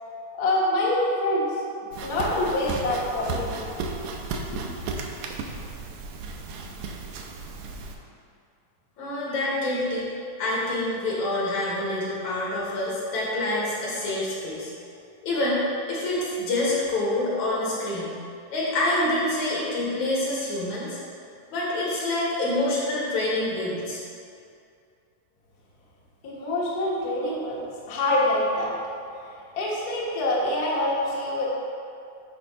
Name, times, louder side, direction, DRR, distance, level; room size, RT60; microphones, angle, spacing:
voice 1, 0.4-1.5 2.0-3.6 4.5-4.6 26.2-28.7 29.5-31.5, left 1 dB, 50° left, -6 dB, 1.2 m, -25 dB
sound 1, 1.9-7.9, right 4 dB, 80° right, 1.9 m, -34 dB
voice 2, 9.0-10.1 10.4-14.7 15.2-15.6 15.9-18.1 18.5-21.0 21.5-24.0, left 1 dB, 70° left, -6 dB, 2.9 m, -26 dB
8.6 x 3.5 x 5.4 m, 2.4 s
omnidirectional pair, 3.5 m